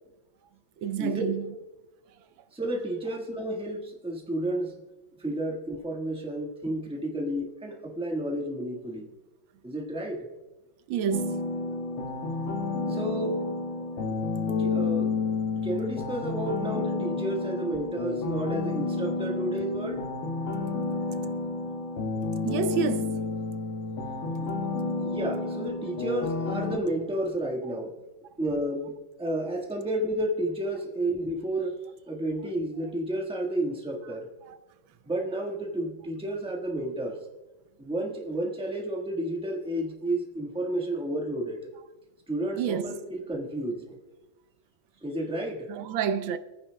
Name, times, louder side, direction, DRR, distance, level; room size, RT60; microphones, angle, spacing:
voice 1, 0.8-1.4 10.9-11.5 22.4-23.2 34.5-34.6 42.6-42.9 45.7-46.4, right 7 dB, 85° right, 1.4 m, -29 dB
voice 2, 2.5-4.7 5.2-9.1 9.6-10.3 12.9-13.4 14.6-15.1 15.6-20.0 24.4-24.5 25.0-27.9 28.4-31.8 32.1-34.3 35.0-37.2 37.8-41.7 42.3-44.0 45.0-45.7, right 1 dB, 5° right, 1.2 m, -31 dB
sound 1, 11.1-26.8, left 3 dB, 90° left, 1.9 m, -30 dB
25.5 x 9.7 x 2.2 m
omnidirectional pair, 2.1 m